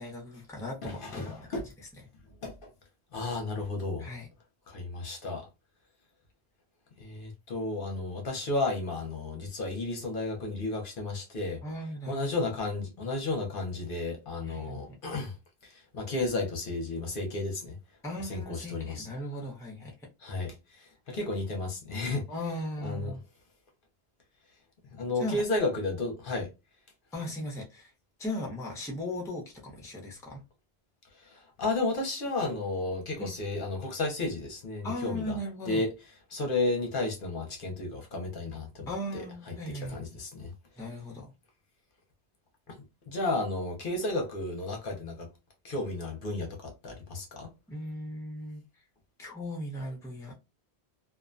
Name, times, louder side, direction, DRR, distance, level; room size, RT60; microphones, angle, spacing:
voice 1, 0.0-1.6 4.0-4.3 11.6-12.5 14.4-14.8 18.0-19.9 22.3-23.2 25.1-25.4 27.1-27.9 28.2-30.4 33.2-33.3 34.8-35.8 38.9-40.1 40.8-41.3 47.7-48.6 49.2-50.3, left 1 dB, 5° left, 0.6 m, -37 dB
voice 2, 0.8-1.6 2.4-2.7 3.1-4.1 4.7-5.5 7.0-11.6 12.1-15.3 15.6-17.8 18.3-19.1 20.2-22.2 22.8-23.1 25.0-26.5 31.2-35.4 35.7-35.9 36.3-38.9 39.1-39.2 39.5-39.6 39.9-40.5 42.7-42.8 43.1-45.3 45.6-47.5, left 2 dB, 60° left, 0.8 m, -33 dB
2.4 x 2.1 x 2.4 m
omnidirectional pair, 1.1 m